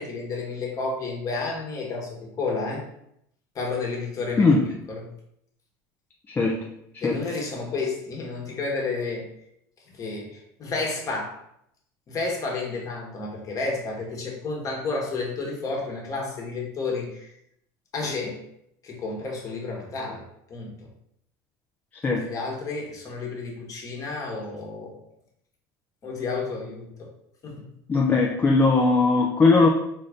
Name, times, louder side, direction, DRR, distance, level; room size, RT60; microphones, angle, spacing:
voice 1, 0.0-2.8 3.5-5.1 7.0-9.3 9.9-11.4 12.1-17.3 17.9-18.4 18.8-20.7 22.2-24.9 26.0-27.1 27.4-27.7, left 3 dB, 35° left, -1 dB, 1.2 m, -31 dB
voice 2, 6.3-6.6 6.9-7.2 22.0-22.3 27.9-29.7, left 3 dB, 20° left, -1 dB, 0.4 m, -19 dB
3.9 x 2.5 x 3.4 m, 0.74 s
supercardioid pair, 115°, 10 cm